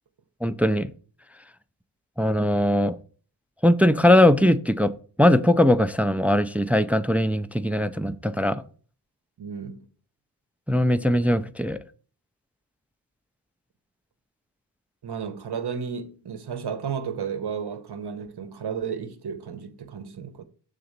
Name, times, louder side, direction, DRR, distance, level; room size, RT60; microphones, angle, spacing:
voice 1, 0.4-0.9 2.2-3.0 3.6-4.9 5.2-8.6 10.7-11.8, left 1 dB, 5° right, 0.4 m, -20 dB
voice 2, 9.4-9.9 15.0-20.4, right 7 dB, 60° right, 1.0 m, -33 dB
6.8 x 4.0 x 6.5 m
wide cardioid pair, 85°, 45 cm